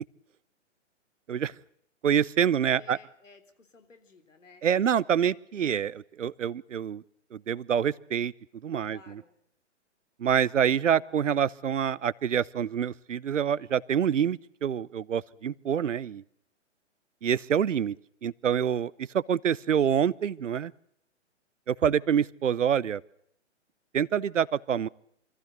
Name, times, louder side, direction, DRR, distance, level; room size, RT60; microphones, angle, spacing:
voice 1, 2.0-3.0 4.6-7.0 7.3-8.3 8.6-9.0 10.2-16.2 17.2-18.0 18.2-20.7 21.7-23.0 23.9-24.9, right 8 dB, 75° right, 20 dB, 0.9 m, -26 dB
voice 2, 2.8-4.7 8.8-9.4, left 4 dB, 85° left, 9 dB, 3.7 m, -54 dB
24.5 x 15.0 x 7.9 m, 0.71 s
hypercardioid pair, 135°, 37 cm